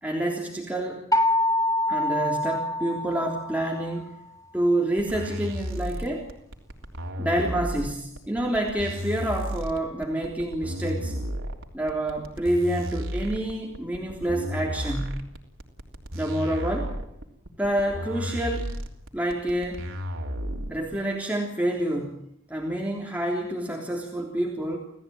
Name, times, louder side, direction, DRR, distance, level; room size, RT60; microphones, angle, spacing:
voice 1, 0.0-1.0 1.9-4.1 4.5-6.3 7.2-11.1 11.7-15.2 16.1-16.9 17.6-18.7 19.1-19.9 20.7-22.1 22.5-24.8, right 1 dB, 5° right, -1 dB, 3.5 m, -28 dB
sound 1, 1.1-3.9, left 1 dB, 15° left, 1.7 m, -25 dB
sound 2, 5.0-21.0, equal, 75° right, 3.5 m, -33 dB
28.5 x 16.5 x 9.4 m, 0.74 s
head